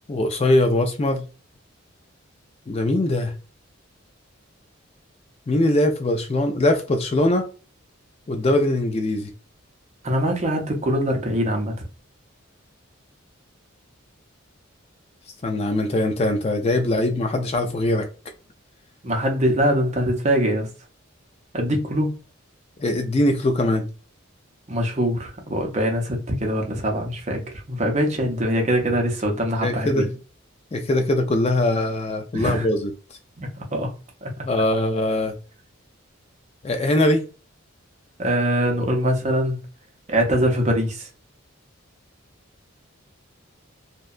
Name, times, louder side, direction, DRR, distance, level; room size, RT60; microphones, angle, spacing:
voice 1, 0.1-1.3 2.7-3.3 5.5-7.5 8.3-9.3 15.4-18.1 22.8-23.9 29.6-30.1 30.7-32.9 34.5-35.3 36.6-37.2, left 1 dB, 30° left, 0.3 m, -21 dB
voice 2, 10.0-11.8 19.0-20.7 21.5-22.1 24.7-27.4 27.7-30.1 32.3-32.7 33.4-33.9 34.2-34.3 38.2-39.6 40.1-41.1, equal, 35° right, 0.6 m, -23 dB
2.7 x 2.2 x 2.3 m
head